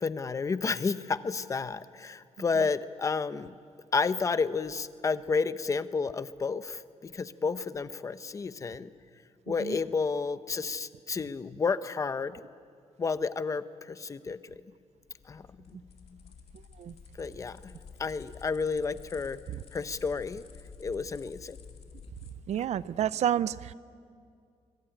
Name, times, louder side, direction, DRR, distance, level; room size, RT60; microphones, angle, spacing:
voice 1, 0.0-3.5 3.9-8.9 9.5-12.4 13.0-14.6 15.2-16.2 17.2-17.7 18.0-19.4 19.7-20.4 20.8-21.6, left 4 dB, 25° left, 13 dB, 0.7 m, -31 dB
sound 1, 15.0-22.6, left 5 dB, 55° left, 2.5 m, -50 dB
voice 2, 22.5-23.7, right 10 dB, 65° right, 17 dB, 0.6 m, -29 dB
24.0 x 23.5 x 9.0 m, 2.3 s
wide cardioid pair, 160°, 12 cm